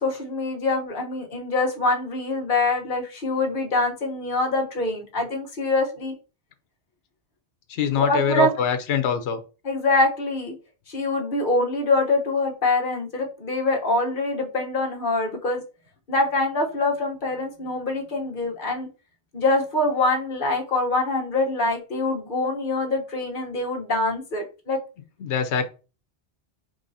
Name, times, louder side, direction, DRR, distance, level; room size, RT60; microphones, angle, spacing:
voice 1, 0.0-6.1 7.9-8.5 9.6-10.5 10.9-15.6 16.1-18.9 19.3-24.8, left 2 dB, 50° left, 1 dB, 1.2 m, -24 dB
voice 2, 7.7-9.4 25.2-25.7, left 6 dB, 85° left, 8 dB, 0.9 m, -23 dB
5.2 x 3.1 x 2.7 m, 0.33 s
omnidirectional pair, 1.1 m